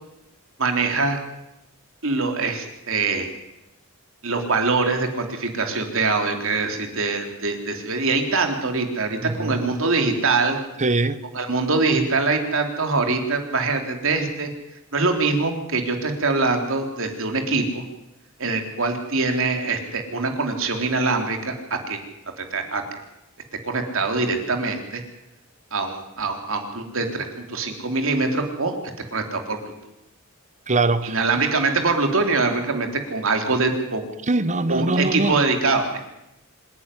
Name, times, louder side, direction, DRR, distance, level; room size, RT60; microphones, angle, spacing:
voice 1, 0.6-1.2 2.0-3.3 4.2-10.6 11.3-14.5 14.9-17.8 18.4-22.0 22.4-22.8 23.6-25.0 25.7-28.8 29.1-29.7 31.0-34.0 34.7-36.0, right 3 dB, 65° right, 3.3 m, -23 dB
voice 2, 9.2-9.6 10.8-11.2 30.7-31.2 34.3-35.4, right 2 dB, 35° right, 1.0 m, -22 dB
26.0 x 10.5 x 9.9 m
head